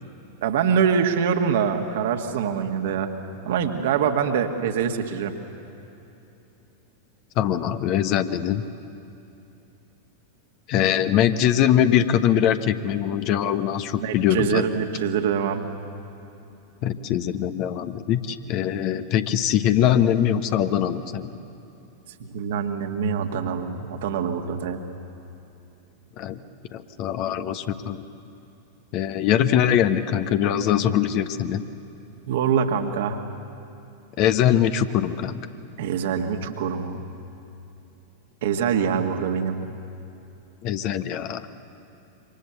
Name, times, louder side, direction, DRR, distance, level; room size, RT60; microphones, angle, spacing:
voice 1, 0.4-3.1 3.4-5.3 14.0-15.6 22.2-24.8 32.3-33.2 35.8-37.0 38.4-39.6, right 7 dB, 55° right, 4 dB, 1.8 m, -24 dB
voice 2, 7.4-8.6 10.7-14.6 16.8-21.3 26.2-26.4 26.7-28.0 28.9-31.6 34.2-35.4 40.6-41.5, left 10 dB, 40° left, 10 dB, 1.2 m, -22 dB
27.0 x 25.0 x 7.1 m, 2.9 s
figure-of-eight pair, 90°, 0 cm